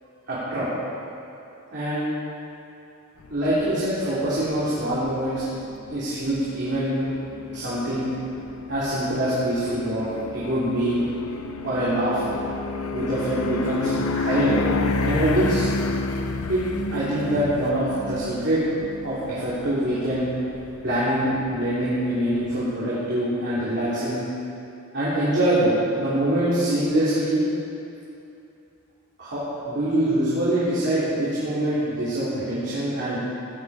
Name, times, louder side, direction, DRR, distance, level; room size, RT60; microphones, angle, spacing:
voice 1, 0.3-0.7 1.7-2.0 3.3-5.4 5.9-7.1 7.5-8.1 8.7-11.0 11.6-12.2 12.9-14.6 15.0-15.7 16.5-16.6 16.9-18.6 19.0-20.3 20.8-24.2 24.9-27.4 29.2-33.2, right 1 dB, 50° right, -10 dB, 3.1 m, -24 dB
sound 1, 3.2-22.6, left 3 dB, 75° left, 0.8 m, -31 dB
16.0 x 10.5 x 4.8 m, 2.8 s
head